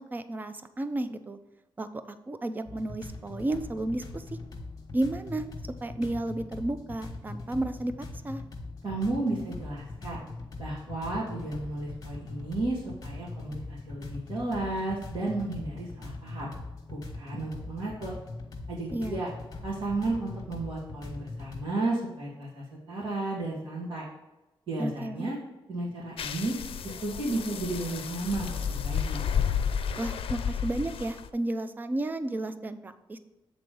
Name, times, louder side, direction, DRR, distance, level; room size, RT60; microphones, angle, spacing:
voice 1, 0.0-1.4 1.8-4.2 4.9-5.4 5.8-8.4 18.9-19.2 24.8-25.3 30.0-33.2, right 1 dB, 20° right, 11 dB, 0.4 m, -32 dB
sound 1, 2.7-21.6, left 3 dB, 40° left, 1.1 m, -41 dB
voice 2, 8.8-10.2 10.6-16.5 16.9-18.2 18.7-19.3 19.6-24.1 24.7-25.4 25.7-26.6 26.8-29.2, right 2 dB, 60° right, -8 dB, 2.1 m, -33 dB
sound 2, 26.2-31.3, left 7 dB, 85° left, 0.5 m, -31 dB
7.6 x 3.9 x 5.2 m, 1.0 s
wide cardioid pair, 160°, 9 cm